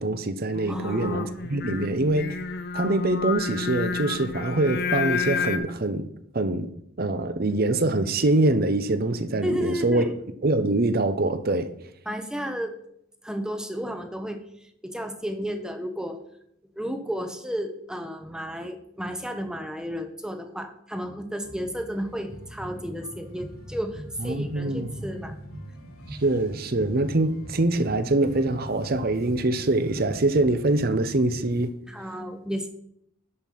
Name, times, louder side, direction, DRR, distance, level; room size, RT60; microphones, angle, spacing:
voice 1, 0.0-2.3 2.7-6.1 6.3-6.7 7.0-10.1 10.4-11.7 24.2-25.0 26.1-31.7, right 2 dB, 45° right, 0.7 m, -24 dB
Singing, 0.5-5.6, left 5 dB, 50° left, 0.8 m, -30 dB
voice 2, 0.7-1.3 9.4-10.1 12.1-12.7 13.2-14.4 14.8-16.2 16.8-25.3 31.9-32.7, equal, 5° right, 0.9 m, -32 dB
sound 1, 21.4-31.7, equal, 85° left, 3.1 m, -41 dB
11.0 x 5.4 x 5.9 m
head